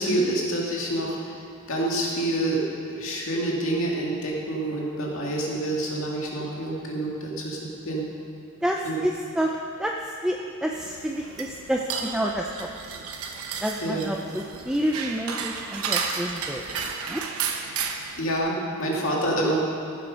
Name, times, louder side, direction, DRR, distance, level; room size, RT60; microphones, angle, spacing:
voice 1, 0.0-1.3 1.7-2.6 2.9-8.1 8.8-9.0 13.8-14.1 18.2-19.6, right 1 dB, 65° left, -3 dB, 2.3 m, -27 dB
voice 2, 8.6-12.7 13.0-13.1 13.6-17.2, equal, 5° right, 0 dB, 0.5 m, -29 dB
sound 1, 10.7-18.4, right 6 dB, 85° right, 0.9 m, -33 dB
14.5 x 7.6 x 5.3 m, 2.4 s
head